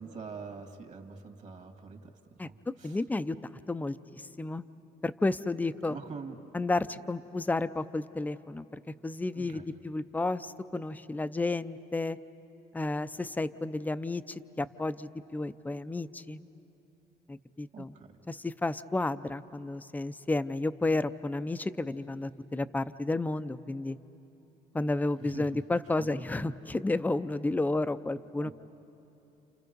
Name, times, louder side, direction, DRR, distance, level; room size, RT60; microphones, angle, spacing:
voice 1, 0.0-2.1 2.4-3.0 5.8-6.4 9.3-9.7 17.7-18.1 25.2-25.5 26.0-26.1 28.4-28.5, right 5 dB, 45° right, 6 dB, 2.0 m, -44 dB
voice 2, 2.8-3.4 3.7-4.6 5.0-6.0 6.5-12.2 12.7-16.5 17.3-18.0 18.3-24.0 24.7-28.5, left 2 dB, 10° left, 13 dB, 0.5 m, -32 dB
29.5 x 29.5 x 5.3 m, 2.9 s
cardioid pair, 110°, 17 cm